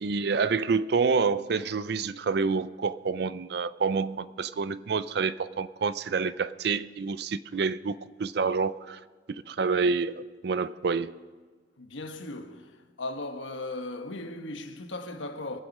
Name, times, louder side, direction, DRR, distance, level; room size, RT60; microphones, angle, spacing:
voice 1, 0.0-9.0 9.5-11.1, right 5 dB, 60° right, 0.4 m, -28 dB
voice 2, 11.8-15.6, left 2 dB, 85° left, 1.2 m, -37 dB
21.5 x 7.9 x 5.4 m
head